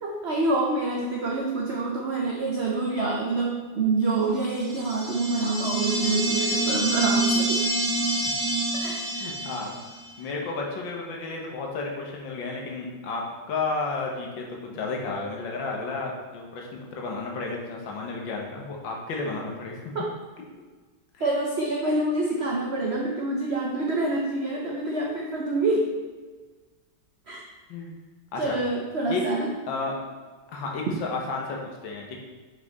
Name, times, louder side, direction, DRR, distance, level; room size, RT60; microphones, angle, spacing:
voice 1, 0.0-7.6 8.7-9.3 21.2-25.9 27.3-27.4 28.4-29.5, right 2 dB, 85° right, -1 dB, 0.5 m, -27 dB
sound 1, 4.6-10.0, right 2 dB, 50° right, 1.9 m, -27 dB
voice 2, 9.2-9.7 10.2-13.2 13.5-19.9 21.2-21.4 27.7-28.0 28.3-28.6 29.1-29.2 29.7-29.9 30.5-32.2, left 3 dB, 80° left, 0 dB, 1.8 m, -32 dB
5.5 x 4.9 x 4.0 m, 1.4 s
omnidirectional pair, 2.1 m